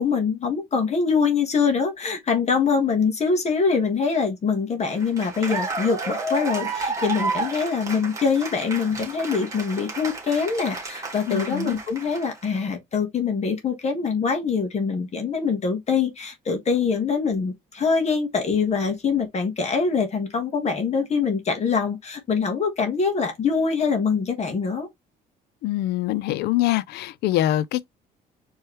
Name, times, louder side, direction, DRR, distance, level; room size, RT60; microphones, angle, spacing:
voice 1, 0.0-24.9, left 5 dB, 40° left, 1.4 m, -24 dB
Cheering / Applause, 4.9-12.4, right 3 dB, 20° right, 2.0 m, -31 dB
voice 2, 11.3-11.8 25.6-27.9, left 14 dB, 75° left, 0.4 m, -24 dB
4.6 x 3.1 x 3.2 m
cardioid pair, 110°, 17 cm